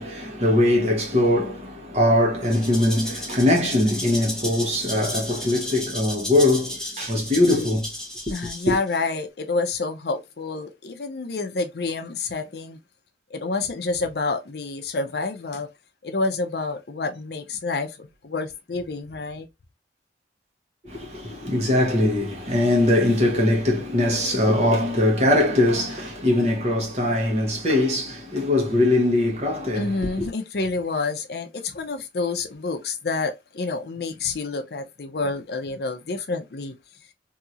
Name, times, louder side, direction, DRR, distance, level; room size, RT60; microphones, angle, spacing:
voice 1, 0.0-7.9 8.7-8.8 20.8-30.3, left 1 dB, 35° right, 1.0 m, -21 dB
Rattle (instrument), 2.4-9.0, left 1 dB, 5° left, 0.8 m, -34 dB
voice 2, 8.3-12.8 13.3-15.7 16.0-19.5 29.7-36.7, left 3 dB, 60° left, 0.6 m, -28 dB
2.9 x 2.8 x 2.4 m
head